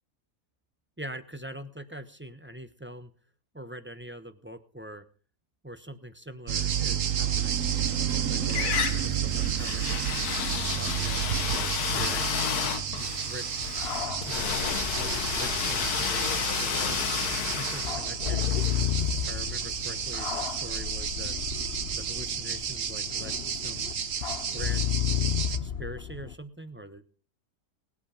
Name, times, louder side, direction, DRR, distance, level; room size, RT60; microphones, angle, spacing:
voice 1, 1.0-3.1 3.5-5.1 5.6-7.6 8.3-10.0 10.6-13.7 14.3-17.0 17.5-21.4 21.9-23.9 24.5-27.0, right 1 dB, 10° right, 10 dB, 0.6 m, -43 dB
sound 1, 6.5-25.6, right 8 dB, 55° right, 1.3 m, -31 dB
sound 2, 7.6-8.2 8.5-19.4, left 8 dB, 65° left, 1.5 m, -32 dB
sound 3, 13.6-26.3, left 10 dB, 50° left, 0.8 m, -33 dB
20.0 x 8.4 x 5.1 m, 0.41 s
omnidirectional pair, 1.8 m